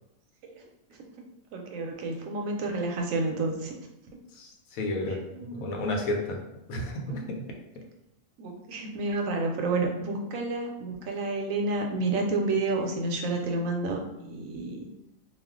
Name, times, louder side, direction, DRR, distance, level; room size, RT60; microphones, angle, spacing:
voice 1, 1.5-3.7 5.1-5.7 7.1-7.2 8.4-14.9, right 2 dB, 80° right, 2 dB, 1.0 m, -30 dB
voice 2, 4.4-5.2 5.5-6.4 6.7-7.2, left 1 dB, 85° left, 1 dB, 1.1 m, -31 dB
2.4 x 2.3 x 3.5 m, 0.90 s
omnidirectional pair, 1.4 m